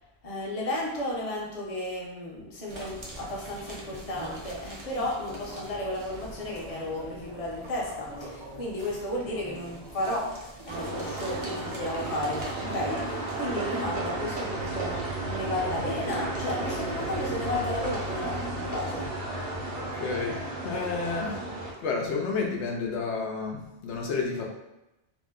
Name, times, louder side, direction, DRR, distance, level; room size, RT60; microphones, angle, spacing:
voice 1, 0.2-19.1, left 1 dB, 40° left, -3 dB, 0.7 m, -33 dB
sound 1, 2.7-14.2 14.5-18.8, right 1 dB, 35° right, 0.5 m, -45 dB
sound 2, 10.7-21.7, right 2 dB, 75° right, 1.0 m, -33 dB
voice 2, 19.9-21.3 21.8-24.5, left 4 dB, 80° left, 0 dB, 0.9 m, -30 dB
2.7 x 2.1 x 3.5 m, 0.95 s
omnidirectional pair, 1.1 m